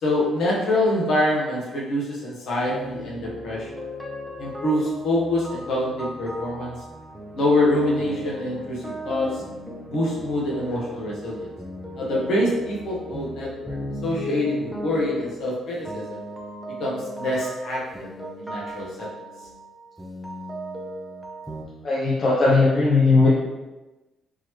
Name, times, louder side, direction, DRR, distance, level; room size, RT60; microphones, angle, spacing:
voice 1, 0.0-3.7 4.4-6.8 7.3-9.4 9.9-11.5 12.0-13.7 14.0-16.2 16.8-18.1 18.4-19.1, left 1 dB, 60° left, -4 dB, 1.1 m, -25 dB
sound 1, 2.7-21.6, equal, ahead, 0.5 m, -36 dB
voice 2, 21.8-23.3, left 3 dB, 40° left, -6 dB, 0.6 m, -18 dB
3.8 x 3.0 x 3.1 m, 1.1 s
cardioid pair, 150°, 0 cm